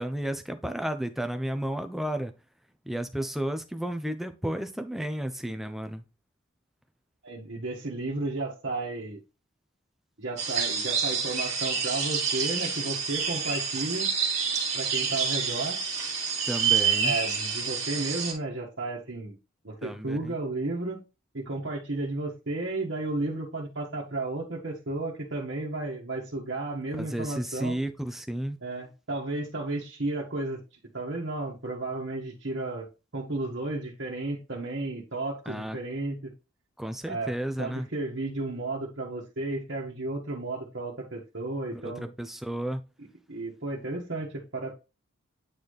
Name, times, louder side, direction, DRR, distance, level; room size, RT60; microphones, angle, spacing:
voice 1, 0.0-2.3 2.9-6.0 16.5-17.2 19.8-20.4 27.0-28.6 35.5-35.8 36.8-37.9 41.7-41.8 42.2-42.8, right 1 dB, ahead, 0.6 m, -32 dB
voice 2, 7.2-9.2 10.2-14.1 14.7-15.8 17.0-19.4 19.6-21.0 21.3-27.8 28.6-30.6 30.9-32.9 33.1-36.3 37.1-37.3 37.6-42.1 43.3-44.7, right 2 dB, 60° right, 1.4 m, -33 dB
sound 1, 10.4-18.3, right 6 dB, 35° right, 2.0 m, -28 dB
8.8 x 4.0 x 3.3 m
head